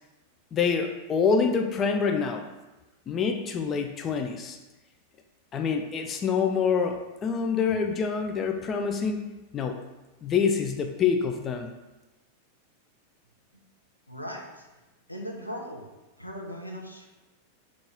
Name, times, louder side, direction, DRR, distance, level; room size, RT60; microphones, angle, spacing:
voice 1, 0.5-2.5 3.1-4.6 5.5-9.2 9.5-9.8 10.2-11.7, left 6 dB, 25° left, 5 dB, 0.3 m, -26 dB
voice 2, 14.1-14.7 15.1-15.9 16.2-17.1, equal, 90° left, 0 dB, 0.6 m, -38 dB
3.9 x 2.4 x 4.4 m, 1.1 s
figure-of-eight pair, 90°, 0 cm